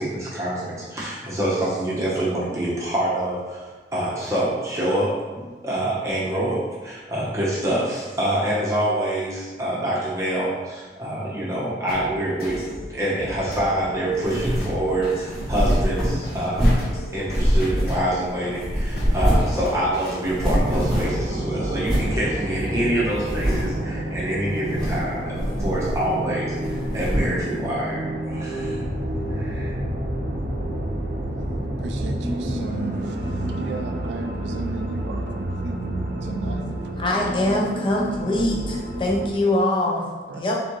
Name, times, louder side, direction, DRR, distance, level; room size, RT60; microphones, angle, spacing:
voice 1, 0.0-5.1 5.6-12.6 12.9-16.8 17.1-28.8 29.3-29.7, right 1 dB, 15° right, -7 dB, 0.9 m, -26 dB
sound 1, 11.9-20.5, left 1 dB, 55° left, 1.0 m, -36 dB
sound 2, 14.2-14.8 15.3-16.9 17.3-18.3 18.6-19.6 19.9-20.0 20.2-21.3 21.8-22.2 22.6-22.7 23.2-23.8 24.6-25.1 25.4-26.2 26.6-27.4, equal, ahead, 1.3 m, -23 dB
sound 3, 20.5-39.3, right 1 dB, 50° right, 0.7 m, -29 dB
voice 2, 31.8-35.8 36.2-36.9 40.3-40.4, right 4 dB, 80° right, 5 dB, 0.3 m, -36 dB
voice 3, 37.0-40.6, left 1 dB, 30° left, -2 dB, 0.6 m, -23 dB
4.0 x 3.7 x 3.1 m, 1.4 s
head